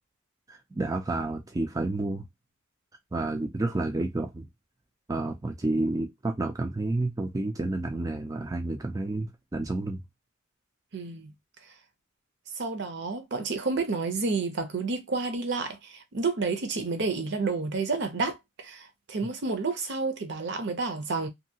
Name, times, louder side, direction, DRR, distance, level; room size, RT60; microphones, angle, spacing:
voice 1, 0.5-2.3 3.1-4.5 5.1-10.0, right 2 dB, 15° right, 0.3 m, -30 dB
voice 2, 10.9-11.3 12.6-21.3, right 4 dB, 55° right, 0.6 m, -30 dB
2.7 x 2.7 x 2.7 m
head